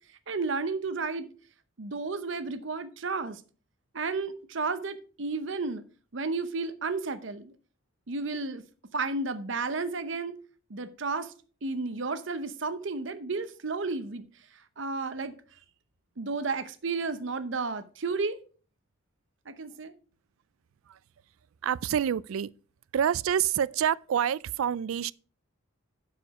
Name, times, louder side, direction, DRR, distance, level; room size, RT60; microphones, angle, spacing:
voice 1, 0.3-1.3 1.8-3.4 3.9-5.8 6.1-7.5 8.1-8.6 8.9-10.4 10.7-11.3 11.6-14.2 14.8-15.4 16.2-18.4 19.5-19.9, right 4 dB, 65° right, 0.8 m, -32 dB
voice 2, 21.6-22.5 22.9-25.1, right 9 dB, 85° right, 0.3 m, -27 dB
11.0 x 5.0 x 4.8 m
head